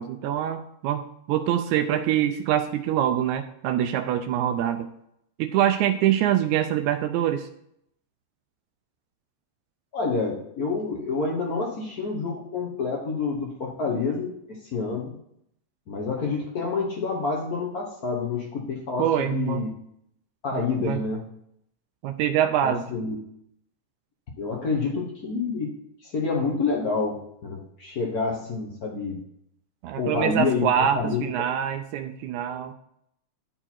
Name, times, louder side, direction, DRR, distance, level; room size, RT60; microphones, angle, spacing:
voice 1, 0.0-4.9 5.4-7.5 19.0-19.6 20.5-21.0 22.0-22.8 29.8-32.7, right 10 dB, 85° right, 7 dB, 1.9 m, -25 dB
voice 2, 9.9-15.1 15.9-19.7 20.4-21.2 22.6-23.1 24.4-25.7 26.0-29.2 29.9-30.7 31.0-31.2, left 4 dB, 80° left, -1 dB, 0.8 m, -28 dB
11.0 x 4.5 x 4.3 m, 0.74 s
omnidirectional pair, 3.3 m